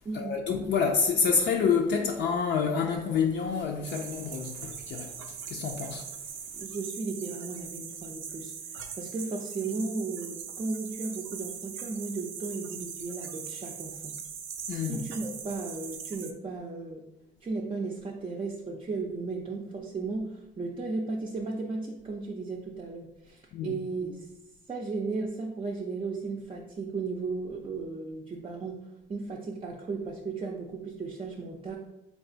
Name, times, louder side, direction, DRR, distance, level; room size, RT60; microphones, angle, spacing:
voice 1, 0.1-6.1 14.7-15.0 23.5-23.8, left 6 dB, 65° left, 0.5 m, -28 dB
sound 1, 3.8-16.3, right 7 dB, 80° right, 0.5 m, -41 dB
voice 2, 6.5-14.1 14.7-17.0 17.4-24.3 24.7-28.8 29.1-31.8, right 3 dB, 25° right, 0.5 m, -35 dB
3.4 x 2.3 x 3.8 m
cardioid pair, 90°, 20 cm